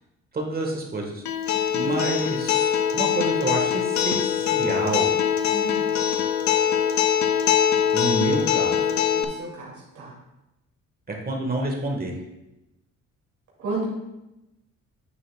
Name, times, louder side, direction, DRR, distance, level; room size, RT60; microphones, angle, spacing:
voice 1, 0.3-1.2 1.7-5.1 7.9-8.9 11.1-12.1, right 2 dB, 30° right, 0 dB, 1.3 m, -28 dB
Acoustic guitar, 1.3-9.2, left 9 dB, 70° left, 0.6 m, -23 dB
voice 2, 5.5-5.9 9.1-10.1 13.6-13.9, right 3 dB, 70° right, -5 dB, 2.4 m, -33 dB
9.4 x 6.6 x 2.2 m, 0.93 s
cardioid pair, 90°, 30 cm